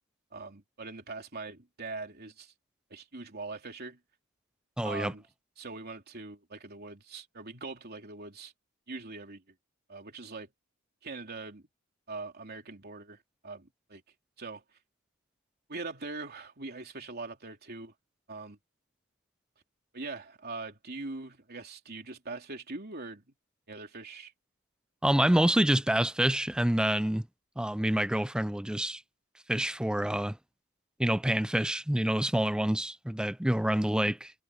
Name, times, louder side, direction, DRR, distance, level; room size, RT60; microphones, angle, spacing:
voice 1, 0.3-2.5 2.9-4.0 4.8-5.2 5.6-8.5 8.9-9.4 9.9-10.5 11.0-11.6 12.1-14.0 14.4-14.6 15.7-17.9 18.3-18.6 19.9-23.2 23.7-24.3, right 3 dB, 50° right, 3.2 m, -42 dB
voice 2, 4.8-5.1 25.0-27.3 27.6-29.0 29.5-30.4 31.0-34.3, right 1 dB, 5° right, 0.4 m, -27 dB
head